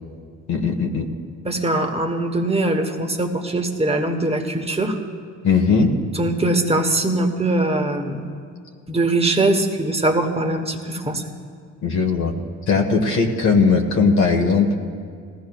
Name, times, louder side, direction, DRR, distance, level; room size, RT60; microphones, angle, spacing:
voice 1, 0.5-1.1 5.4-5.9 11.8-12.3 12.7-14.7, left 4 dB, 70° left, 2 dB, 1.4 m, -18 dB
voice 2, 1.4-5.0 6.1-8.3 8.9-11.3, right 2 dB, 20° right, 5 dB, 1.2 m, -21 dB
18.5 x 15.0 x 2.4 m, 2.2 s
cardioid pair, 90°, 30 cm